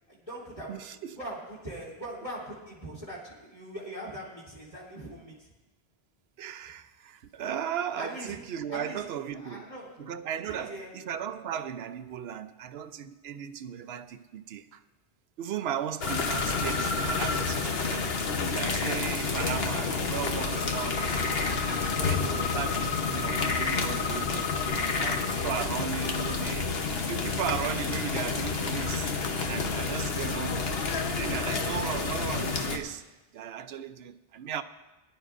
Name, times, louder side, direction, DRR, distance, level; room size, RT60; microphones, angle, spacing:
voice 1, 0.1-0.7 1.2-5.4 8.0-8.4 8.7-9.0 9.3-9.9 10.5-10.9 21.0-21.9 22.3-22.6, right 1 dB, 30° left, 2.7 m, -41 dB
voice 2, 0.7-1.2 6.4-9.7 10.0-14.8 15.4-21.3 22.0-24.5 24.9-26.8 27.1-29.1 29.4-30.7 31.1-33.0 33.3-34.6, right 8 dB, 75° right, 0.9 m, -36 dB
sound 1, 16.0-32.8, left 4 dB, 70° left, 1.2 m, -29 dB
21.5 x 11.0 x 2.5 m
omnidirectional pair, 1.1 m